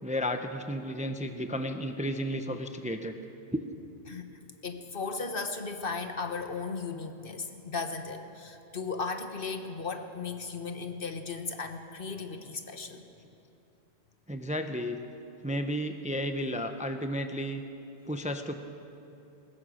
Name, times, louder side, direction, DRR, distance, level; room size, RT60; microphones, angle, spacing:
voice 1, 0.0-3.2 3.5-3.6 14.3-15.0 15.4-17.6 18.1-18.5, equal, 10° right, 7 dB, 0.7 m, -33 dB
voice 2, 4.1-13.0, left 4 dB, 55° left, 7 dB, 1.4 m, -36 dB
21.0 x 20.0 x 6.4 m, 2.9 s
omnidirectional pair, 1.1 m